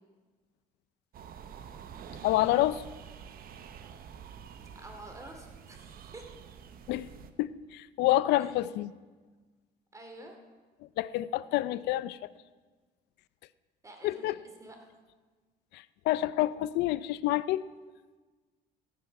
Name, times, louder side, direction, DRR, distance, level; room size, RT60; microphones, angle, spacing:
sound 1, 1.1-7.3, right 7 dB, 60° right, 0.9 m, -48 dB
voice 1, 2.2-2.8 6.9-7.1 7.4-8.9 11.0-12.2 14.0-14.4 15.7-17.6, left 15 dB, 80° left, 17 dB, 0.5 m, -28 dB
voice 2, 4.7-6.4 8.3-8.5 9.9-10.5 13.8-14.9, right 1 dB, 20° right, 4 dB, 2.5 m, -49 dB
15.0 x 9.6 x 5.9 m, 1.3 s
cardioid pair, 110°, 17 cm